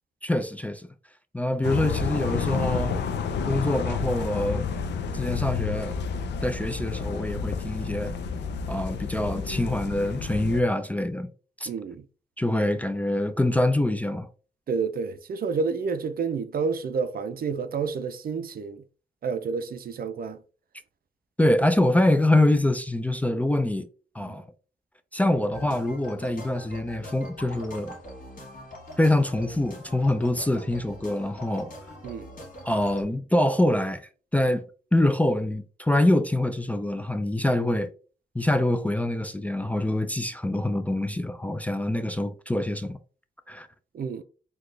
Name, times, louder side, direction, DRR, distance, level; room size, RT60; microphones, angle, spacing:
voice 1, 0.2-0.9 1.3-3.0 3.4-4.7 5.1-6.0 6.4-8.2 8.7-11.3 11.6-11.7 12.4-14.3 21.4-23.9 24.1-24.5 25.1-28.0 29.0-31.7 32.6-34.7 34.9-37.9 38.3-43.0 43.5-43.7, left 1 dB, 10° left, 0.4 m, -25 dB
sound 1, 1.6-10.6, left 6 dB, 85° left, 0.5 m, -30 dB
voice 2, 11.7-12.0 14.7-18.8 19.2-20.4 24.3-24.4 32.0-32.3 43.9-44.2, right 5 dB, 55° right, 0.5 m, -29 dB
sound 2, 25.5-33.0, equal, 50° left, 1.4 m, -43 dB
4.0 x 2.3 x 3.2 m
cardioid pair, 75°, 18 cm